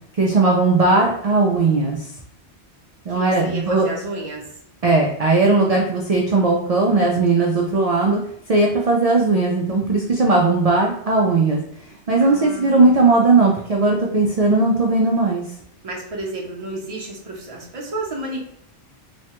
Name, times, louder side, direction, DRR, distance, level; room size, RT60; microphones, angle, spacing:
voice 1, 0.2-2.1 3.1-3.9 4.8-8.2 8.5-11.6 12.1-15.4, right 3 dB, 70° right, -1 dB, 0.3 m, -17 dB
voice 2, 3.1-4.5 12.2-12.9 15.8-18.5, right 2 dB, 35° right, -2 dB, 0.7 m, -31 dB
3.1 x 2.1 x 2.8 m, 0.71 s
omnidirectional pair, 1.2 m